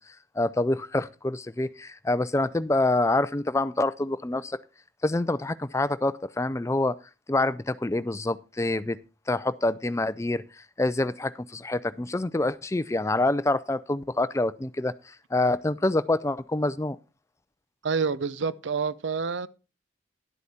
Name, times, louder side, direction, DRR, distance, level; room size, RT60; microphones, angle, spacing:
voice 1, 0.0-4.6 5.0-7.0 7.3-9.0 9.3-17.0, left 2 dB, 15° left, 0.4 m, -26 dB
voice 2, 17.8-19.5, right 5 dB, 70° right, 0.6 m, -28 dB
11.5 x 8.1 x 4.2 m
head